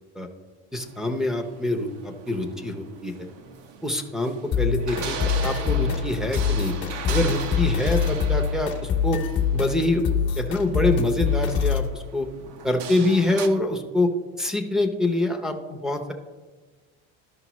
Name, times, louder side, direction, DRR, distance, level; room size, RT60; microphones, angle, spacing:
voice 1, 0.7-3.3 3.8-5.2 5.4-6.7 7.1-9.2 9.5-10.1 10.4-12.3 12.6-14.1 14.4-16.1, left 1 dB, ahead, 5 dB, 0.6 m, -25 dB
sound 1, 0.8-13.5, right 6 dB, 90° right, 0.9 m, -38 dB
sound 2, 4.5-11.9, left 7 dB, 35° left, 0.9 m, -25 dB
12.5 x 5.3 x 3.0 m, 1.3 s
cardioid pair, 145°, 32 cm